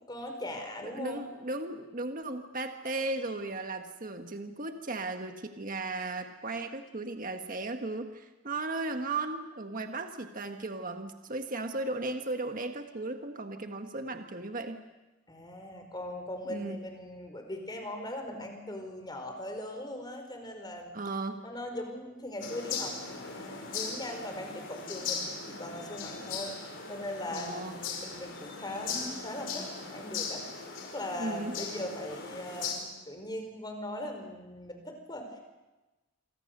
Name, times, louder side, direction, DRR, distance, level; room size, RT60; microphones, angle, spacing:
voice 1, 0.0-1.2 15.3-21.0 21.4-30.4 30.8-35.4, left 1 dB, 20° left, 5 dB, 4.9 m, -40 dB
voice 2, 0.8-14.8 16.5-16.8 20.9-21.4 27.3-27.8 31.2-31.5, right 2 dB, 45° right, 5 dB, 1.7 m, -36 dB
sound 1, 22.4-32.7, left 5 dB, 65° left, 5.3 m, -39 dB
28.0 x 25.0 x 6.8 m, 1.1 s
head